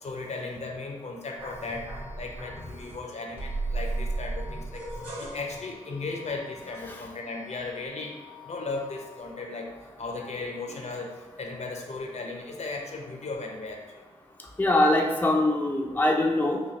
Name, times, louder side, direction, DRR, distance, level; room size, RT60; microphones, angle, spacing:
voice 1, 0.0-1.9 2.2-4.8 5.2-8.2 8.4-9.7 10.0-14.0, left 3 dB, 60° left, 1 dB, 0.6 m, -36 dB
sound 1, 1.4-3.0 3.4-7.4 7.7-9.2, right 2 dB, 45° right, 1.4 m, -36 dB
voice 2, 14.6-16.6, left 1 dB, 15° left, 0 dB, 0.4 m, -23 dB
4.0 x 2.2 x 3.2 m, 1.2 s
cardioid pair, 55°, 13 cm